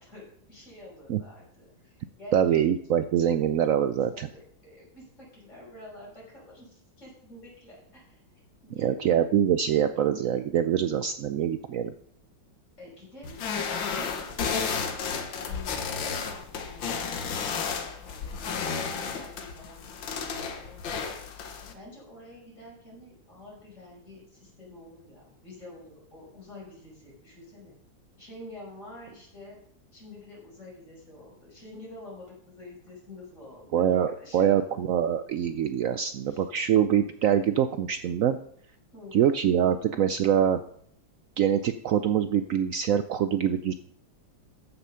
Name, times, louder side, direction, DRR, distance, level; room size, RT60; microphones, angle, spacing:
voice 1, 0.0-2.6 4.0-8.2 8.6-9.1 12.8-15.8 16.1-18.8 19.1-21.0 21.7-27.7 28.2-29.6 29.9-34.6 36.3-36.4 38.9-39.3, left 1 dB, 40° left, -4 dB, 6.1 m, -48 dB
voice 2, 2.3-4.3 8.8-11.9 33.7-38.4 39.1-40.6 41.4-43.7, right 9 dB, 85° right, 10 dB, 0.7 m, -24 dB
sound 1, 13.2-21.7, left 6 dB, 85° left, 1.9 m, -32 dB
14.0 x 6.9 x 5.7 m, 0.67 s
omnidirectional pair, 2.0 m